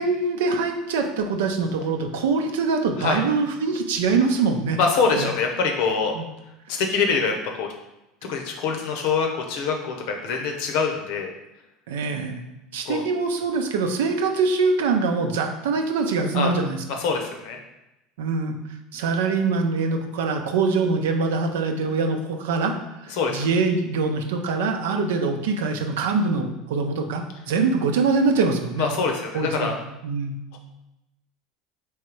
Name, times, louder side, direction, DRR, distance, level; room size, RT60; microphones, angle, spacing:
voice 1, 0.0-4.8 5.1-5.3 6.1-6.3 6.7-6.8 11.9-12.4 12.7-16.8 18.2-18.6 18.9-22.7 23.0-28.9 29.3-29.7 30.0-30.4, right 4 dB, 75° right, 4 dB, 0.6 m, -23 dB
voice 2, 4.8-6.1 6.7-7.7 8.2-11.3 12.8-13.0 16.3-16.5 16.9-17.6 23.1-23.5 28.8-29.8 30.5-30.6, left 5 dB, 65° left, 3 dB, 0.8 m, -24 dB
3.6 x 3.1 x 4.5 m, 0.94 s
hypercardioid pair, 75°, 0 cm